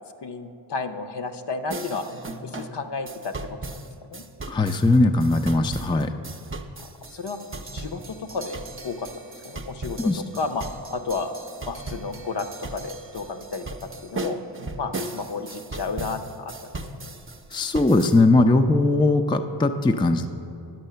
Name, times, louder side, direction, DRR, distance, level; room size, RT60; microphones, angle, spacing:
voice 1, 0.2-2.0 2.4-3.7 4.0-4.3 6.8-7.4 7.7-9.1 9.4-11.3 11.7-13.7 14.0-14.4 14.8-16.5 16.9-17.1, left 4 dB, 60° left, 7 dB, 0.7 m, -32 dB
sound 1, 1.7-18.2, right 2 dB, 30° right, 0.7 m, -37 dB
voice 2, 4.5-6.1 10.0-10.2 17.5-20.3, left 2 dB, 10° left, 6 dB, 0.4 m, -19 dB
10.5 x 5.4 x 6.7 m, 2.7 s
cardioid pair, 45°, 46 cm